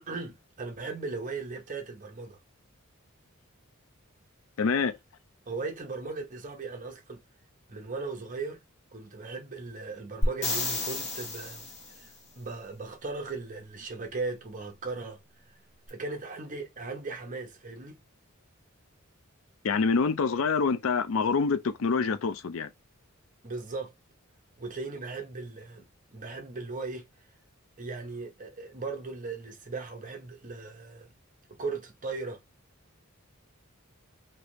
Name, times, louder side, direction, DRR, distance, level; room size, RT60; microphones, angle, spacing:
voice 1, 0.0-2.4 5.5-7.2 7.7-8.6 8.9-11.7 12.0-12.1 12.4-15.2 15.9-18.0 23.4-23.9 24.6-25.8 26.1-27.1 27.8-31.1 31.6-32.4, right 3 dB, 40° right, 0.9 m, -37 dB
voice 2, 4.6-5.0 19.6-22.7, left 5 dB, 65° left, 0.5 m, -26 dB
sound 1, 10.2-12.1 15.9-16.0, left 2 dB, 35° left, 1.1 m, -31 dB
3.3 x 2.6 x 3.0 m
head